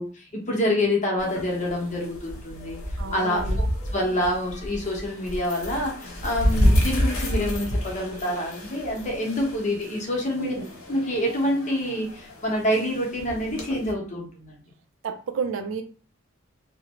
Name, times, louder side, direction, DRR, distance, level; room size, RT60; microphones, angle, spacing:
voice 1, 0.0-2.8 3.1-3.5 3.9-10.5 10.9-14.6, left 1 dB, 35° left, -1 dB, 0.8 m, -27 dB
sound 1, 1.2-13.9, equal, 80° left, 0.7 m, -29 dB
voice 2, 3.0-3.6 10.4-10.6 15.0-15.8, right 5 dB, 70° right, 6 dB, 0.4 m, -31 dB
2.5 x 2.1 x 2.9 m, 0.39 s
head